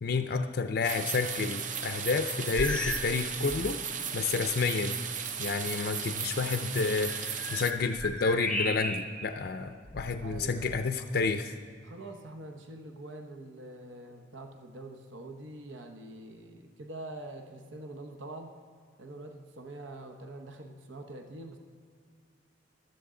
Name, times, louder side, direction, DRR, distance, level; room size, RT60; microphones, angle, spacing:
voice 1, 0.0-3.8 4.1-5.0 5.4-11.6, left 4 dB, 55° left, 7 dB, 0.5 m, -30 dB
sound 1, 0.8-7.7, right 7 dB, 40° right, 0.6 m, -36 dB
sound 2, 2.5-3.2 3.5-3.8 4.5-4.6 7.0-9.3 9.9-10.9, left 1 dB, 5° left, 0.7 m, -35 dB
voice 2, 10.2-11.1 11.8-18.5 19.0-21.6, right 2 dB, 85° right, 4 dB, 1.0 m, -45 dB
15.5 x 12.0 x 3.8 m, 2.1 s
head